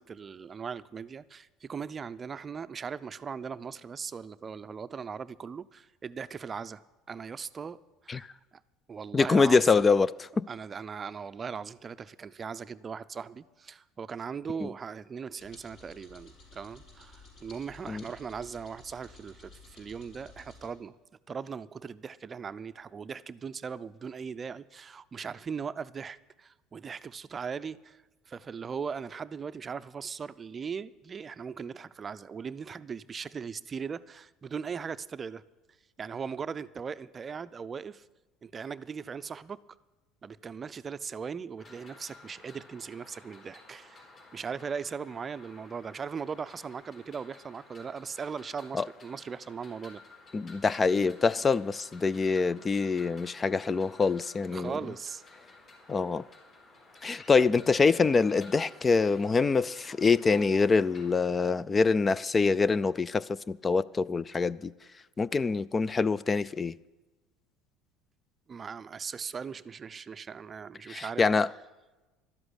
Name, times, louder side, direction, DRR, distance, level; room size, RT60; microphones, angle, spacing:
voice 1, 0.0-7.8 8.0-8.3 8.9-9.7 10.5-21.0 21.3-35.4 36.0-38.1 38.4-39.6 40.2-44.1 44.3-50.0 54.5-55.2 68.5-71.2, right 6 dB, 30° right, 0.5 m, -39 dB
voice 2, 9.1-10.4 17.9-18.0 48.7-48.9 50.3-54.8 55.9-56.2 57.0-64.7 65.2-66.7 70.9-71.5, left 4 dB, 25° left, 0.3 m, -25 dB
sound 1, 15.4-20.7, left 2 dB, 60° left, 5.5 m, -54 dB
sound 2, 41.6-61.2, left 2 dB, 40° left, 4.1 m, -54 dB
12.0 x 7.9 x 10.0 m
supercardioid pair, 95°, 0 cm